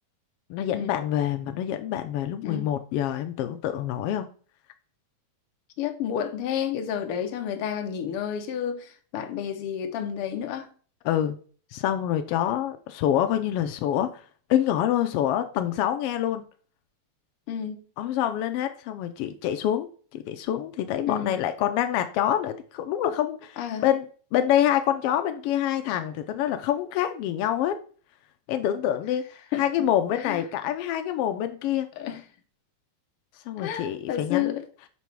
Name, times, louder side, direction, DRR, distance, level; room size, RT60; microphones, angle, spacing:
voice 1, 0.5-4.3 11.0-11.4 11.7-14.2 14.5-16.4 18.0-24.0 24.3-27.8 28.5-29.3 29.6-31.9 33.5-34.6, left 11 dB, 85° left, 1.3 m, -26 dB
voice 2, 5.8-10.7 17.5-17.8 21.1-21.3 23.6-23.9 29.5-29.9 30.1-30.4 32.0-32.2 33.6-34.7, left 9 dB, 70° left, 1.4 m, -31 dB
6.0 x 5.7 x 4.6 m
omnidirectional pair, 3.3 m